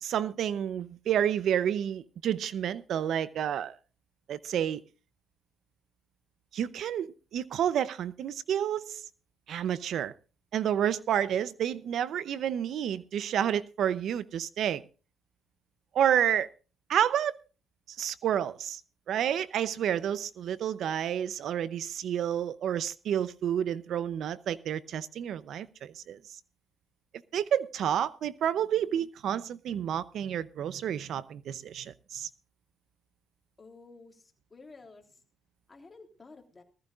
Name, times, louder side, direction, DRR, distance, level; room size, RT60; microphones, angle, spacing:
voice 1, 0.0-3.7 4.3-4.8 6.5-9.0 9.5-10.1 10.5-14.8 15.9-16.5 16.9-17.3 18.0-18.8 19.1-26.4 27.3-32.3, right 9 dB, 70° right, 0.7 m, -30 dB
voice 2, 33.6-35.2 35.7-36.6, left 3 dB, 25° left, 3.4 m, -52 dB
19.5 x 14.5 x 2.5 m
cardioid pair, 90°, 0 cm